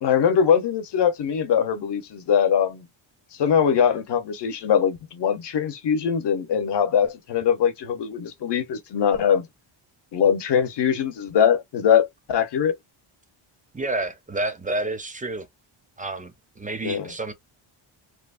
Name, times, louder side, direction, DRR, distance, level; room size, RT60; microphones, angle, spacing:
voice 1, 0.0-2.9 3.4-9.5 10.1-12.7 16.8-17.1, left 8 dB, 55° left, 0.9 m, -22 dB
voice 2, 13.7-15.5 16.0-17.3, right 2 dB, 15° right, 0.5 m, -29 dB
3.1 x 2.1 x 2.4 m
wide cardioid pair, 135°, 48 cm